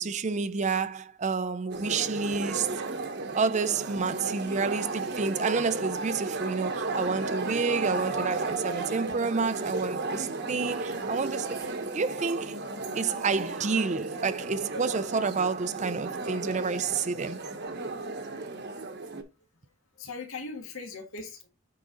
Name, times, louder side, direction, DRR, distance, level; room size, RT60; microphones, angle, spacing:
voice 1, 0.0-2.8 3.3-12.7 12.9-17.4, right 5 dB, 35° right, 0.4 m, -29 dB
sound 1, 1.7-19.2, right 3 dB, 50° right, 1.0 m, -34 dB
voice 2, 19.4-21.5, left 4 dB, 70° left, 1.7 m, -41 dB
8.5 x 3.8 x 4.1 m
head